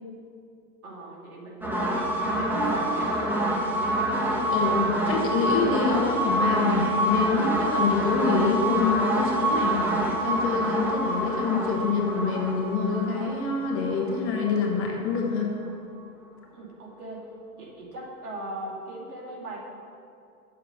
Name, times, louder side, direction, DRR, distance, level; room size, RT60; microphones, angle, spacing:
voice 1, 0.8-3.7 16.5-17.2 17.5-19.6, right 2 dB, 70° right, -2 dB, 2.5 m, -37 dB
sound 1, 1.6-15.2, right 1 dB, 5° right, 1.1 m, -26 dB
voice 2, 4.5-9.9 10.2-15.5, left 4 dB, 30° left, 0 dB, 1.3 m, -26 dB
8.5 x 7.0 x 5.4 m, 2.5 s
hypercardioid pair, 125°, 46 cm